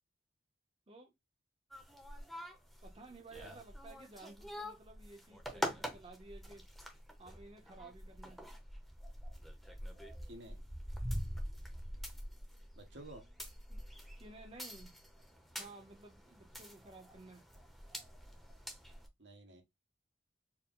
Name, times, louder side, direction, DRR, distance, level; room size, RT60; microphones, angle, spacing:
sound 1, 1.7-19.1, equal, ahead, 0.7 m, -45 dB
voice 1, 2.8-6.6 7.2-8.4 13.7-13.8 14.2-14.9 15.6-17.4, right 2 dB, 30° right, 0.8 m, -54 dB
voice 2, 10.3-10.6 12.8-13.2 19.2-19.6, right 1 dB, 90° right, 1.4 m, -52 dB
4.5 x 2.1 x 3.7 m
head